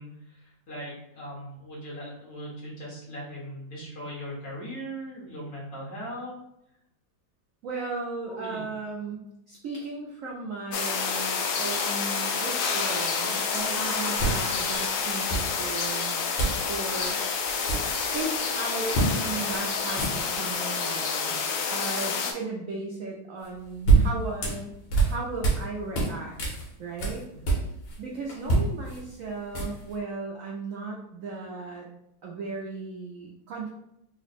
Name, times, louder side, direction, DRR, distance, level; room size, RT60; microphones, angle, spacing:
voice 1, 0.0-6.3 8.3-8.6, equal, 50° left, -5 dB, 1.6 m, -39 dB
voice 2, 7.6-9.2 9.5-16.3 16.7-17.2 18.1-21.4 21.7-24.7 25.0-26.4 26.8-27.2 28.0-31.9 32.2-33.7, right 3 dB, 70° right, -2 dB, 0.7 m, -36 dB
sound 1, 10.7-22.3, left 5 dB, 70° left, 1.0 m, -28 dB
sound 2, 13.5-13.7 14.2-14.8 15.3-15.9 16.4-16.7 16.9-17.1 17.4-18.3 18.9-19.2 19.5-19.6 19.9-20.6 23.4-25.7 25.9-28.0 28.3-29.9, right 3 dB, 90° left, 1.8 m, -26 dB
3.8 x 2.1 x 4.1 m, 0.82 s
omnidirectional pair, 2.0 m